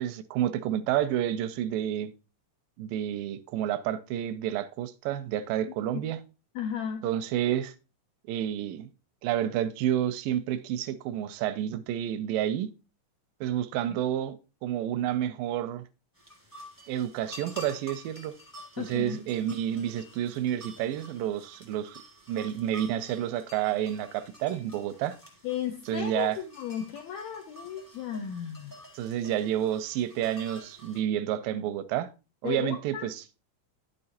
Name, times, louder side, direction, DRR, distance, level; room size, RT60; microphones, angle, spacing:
voice 1, 0.0-2.1 2.8-6.2 7.0-7.7 8.3-8.9 9.2-12.7 13.4-15.8 16.9-18.3 18.8-22.0 22.3-25.2 25.9-26.4 29.0-32.1 32.4-33.2, right 11 dB, 90° right, 2.3 m, -30 dB
voice 2, 6.5-7.1 13.9-14.0 18.8-19.2 25.4-28.8 32.4-33.1, left 9 dB, 85° left, 1.5 m, -35 dB
sound 1, 16.1-31.0, left 1 dB, 10° left, 0.8 m, -50 dB
9.8 x 6.6 x 2.8 m
omnidirectional pair, 3.9 m